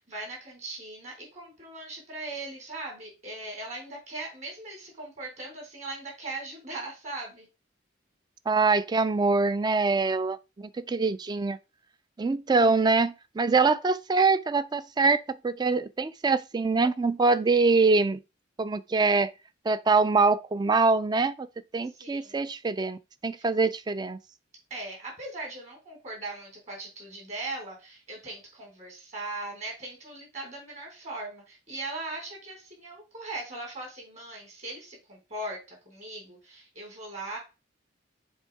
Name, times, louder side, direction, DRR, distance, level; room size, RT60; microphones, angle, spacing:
voice 1, 0.0-7.5 22.0-22.5 23.3-23.5 24.7-37.4, right 2 dB, 35° right, 3.8 m, -39 dB
voice 2, 8.5-11.6 12.2-18.2 18.6-19.3 19.7-24.2, right 4 dB, 20° right, 0.3 m, -24 dB
7.2 x 3.5 x 4.7 m
head